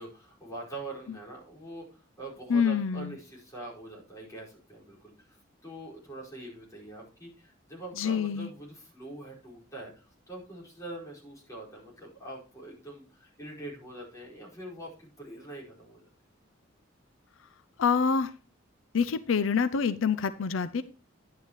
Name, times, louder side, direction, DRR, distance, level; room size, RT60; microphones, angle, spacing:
voice 1, 0.0-16.0, right 2 dB, 15° left, -4 dB, 4.8 m, -44 dB
voice 2, 2.5-3.1 8.0-8.5 17.8-18.3 18.9-20.8, left 6 dB, 80° left, 13 dB, 0.5 m, -26 dB
10.5 x 9.3 x 3.1 m, 0.35 s
head